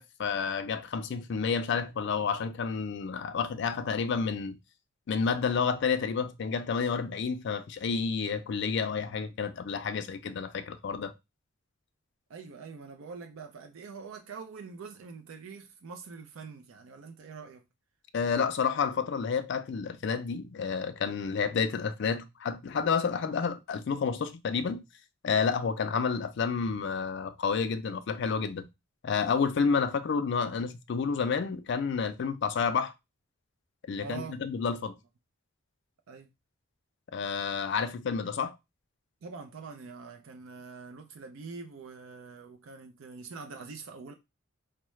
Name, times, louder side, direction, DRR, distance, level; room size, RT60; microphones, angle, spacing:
voice 1, 0.0-4.6 5.1-11.1 18.1-24.8 25.2-28.7 29.0-32.9 33.9-35.0 37.1-38.6, left 5 dB, 55° left, 0.4 m, -30 dB
voice 2, 12.3-17.6 34.0-34.4 36.1-36.3 39.2-44.1, right 5 dB, 70° right, 0.4 m, -44 dB
4.5 x 2.0 x 3.1 m
head